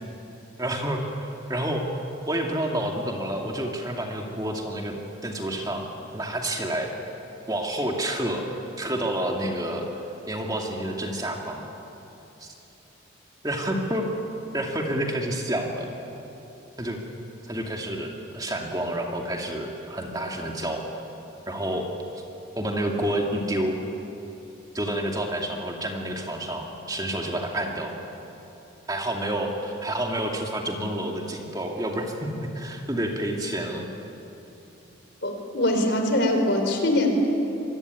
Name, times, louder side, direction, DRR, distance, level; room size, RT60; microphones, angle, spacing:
voice 1, 0.6-1.9 2.3-5.8 6.1-6.9 7.5-8.4 8.8-9.8 10.3-11.6 12.4-12.5 13.4-14.1 14.5-15.9 16.8-17.0 17.4-20.8 21.5-21.9 22.1-22.2 22.6-23.8 24.7-27.9 28.9-33.9, right 1 dB, 20° right, 1 dB, 2.4 m, -29 dB
voice 2, 35.2-37.1, left 1 dB, 55° left, 4 dB, 4.2 m, -23 dB
26.0 x 23.5 x 9.6 m, 2.9 s
head